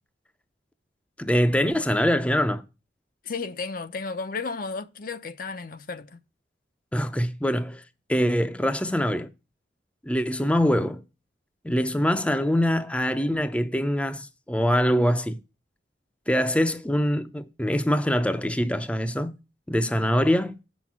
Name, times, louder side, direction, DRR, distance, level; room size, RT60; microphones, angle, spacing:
voice 1, 1.2-2.6 6.9-7.8 8.1-9.3 10.0-11.0 11.6-15.4 16.3-19.3 19.7-20.6, equal, 5° left, 0.6 m, -24 dB
voice 2, 3.2-6.2, left 4 dB, 50° left, 0.6 m, -33 dB
7.9 x 6.2 x 5.9 m
head